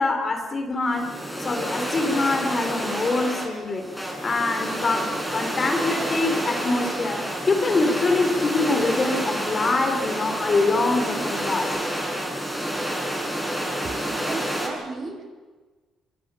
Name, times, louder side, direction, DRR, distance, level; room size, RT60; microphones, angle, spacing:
voice 1, 0.0-3.8 4.2-7.2 7.5-11.7, left 3 dB, 35° left, 6 dB, 3.7 m, -24 dB
sound 1, 0.9-14.7, equal, ahead, 7.2 m, -29 dB
voice 2, 13.8-15.2, right 3 dB, 35° right, 5 dB, 5.4 m, -35 dB
25.0 x 24.0 x 7.1 m, 1.3 s
cardioid pair, 115°, 0 cm